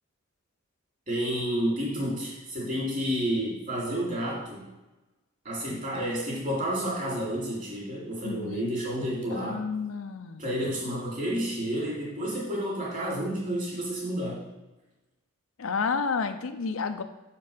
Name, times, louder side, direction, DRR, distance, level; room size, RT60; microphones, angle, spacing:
voice 1, 1.1-4.7 5.4-9.6 10.4-14.4, equal, 40° right, -4 dB, 2.9 m, -30 dB
voice 2, 8.2-8.7 9.3-10.4 15.6-17.0, left 5 dB, 85° left, 9 dB, 0.6 m, -30 dB
6.4 x 5.2 x 5.7 m, 1.1 s
head